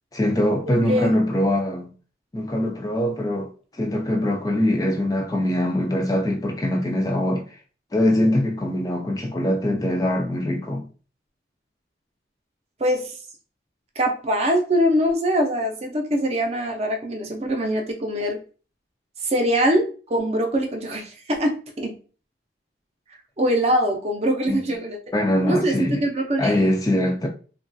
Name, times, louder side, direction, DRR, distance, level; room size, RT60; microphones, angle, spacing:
voice 1, 0.1-1.9 2.3-3.5 3.8-7.4 7.9-10.8 24.5-24.6 25.1-26.0 26.4-27.3, left 1 dB, 20° left, 0.3 m, -22 dB
voice 2, 12.8-13.2 14.0-18.4 19.2-21.9 23.4-25.0 25.5-26.8, equal, 35° right, 0.5 m, -23 dB
3.0 x 2.3 x 2.5 m
head